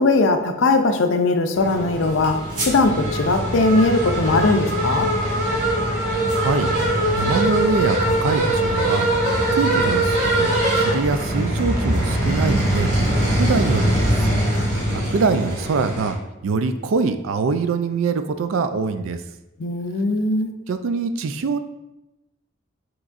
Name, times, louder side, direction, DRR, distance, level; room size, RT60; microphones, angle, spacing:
voice 1, 0.0-5.1 19.6-20.5, left 3 dB, 70° left, 7 dB, 0.4 m, -19 dB
sound 1, 1.5-16.1, right 1 dB, 40° right, 1.4 m, -21 dB
voice 2, 6.3-9.1 9.5-12.9 13.3-14.3 14.9-16.2 16.4-19.2 20.7-21.6, right 4 dB, 85° right, 10 dB, 0.4 m, -24 dB
6.0 x 3.0 x 2.5 m, 0.95 s
head